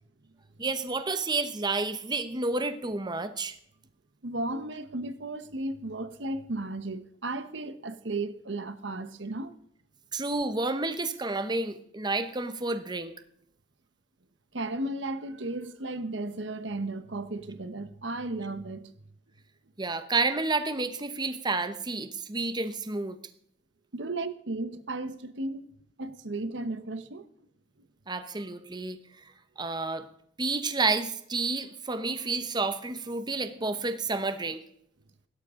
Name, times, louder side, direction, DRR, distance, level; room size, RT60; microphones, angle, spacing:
voice 1, 0.6-3.6 10.1-13.1 19.8-23.2 28.1-30.1 30.4-34.6, right 3 dB, 25° right, 0.9 m, -30 dB
voice 2, 4.2-9.5 14.5-18.9 23.9-25.6 26.0-27.3, right 2 dB, 70° right, 1.1 m, -34 dB
16.5 x 12.5 x 3.8 m
head